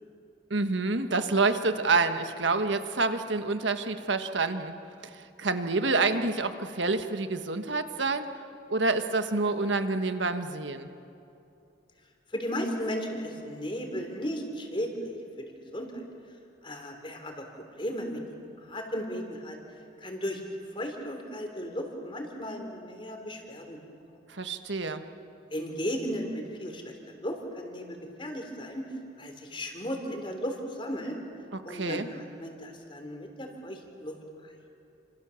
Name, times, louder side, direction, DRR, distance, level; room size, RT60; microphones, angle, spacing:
voice 1, 0.5-4.7 5.1-8.3 8.7-10.9 24.3-25.0 31.5-32.1, right 3 dB, 80° right, 8 dB, 1.5 m, -28 dB
voice 2, 12.3-16.0 16.6-17.4 17.8-18.2 18.6-19.6 20.0-20.4 20.7-23.8 25.5-28.8 29.2-31.2 31.6-34.1 34.4-34.5, equal, 25° left, 4 dB, 3.4 m, -35 dB
29.0 x 27.0 x 7.1 m, 2.7 s
head